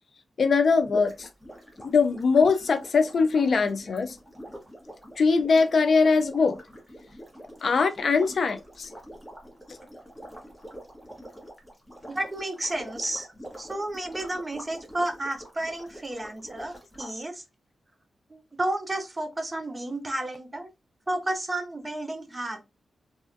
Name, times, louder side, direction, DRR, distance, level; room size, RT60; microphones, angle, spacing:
voice 1, 0.4-1.3 1.8-4.1 5.2-6.6 7.6-8.9, left 4 dB, 60° left, 0.4 m, -22 dB
sound 1, 0.8-17.1, equal, ahead, 1.3 m, -45 dB
voice 2, 12.1-17.4 18.3-20.7 21.1-22.6, right 1 dB, 20° right, 0.7 m, -32 dB
3.1 x 2.4 x 2.6 m
cardioid pair, 75°, 0 cm